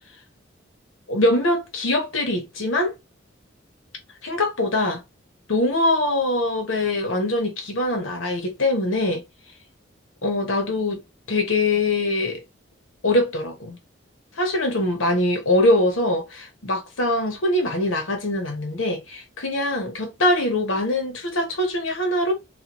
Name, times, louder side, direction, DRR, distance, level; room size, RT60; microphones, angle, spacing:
voice 1, 1.1-3.0 4.2-5.0 5.5-9.2 10.2-11.0 11.3-12.4 13.0-13.8 14.4-22.3, left 1 dB, 85° left, 1.0 m, -23 dB
3.1 x 2.4 x 2.9 m
head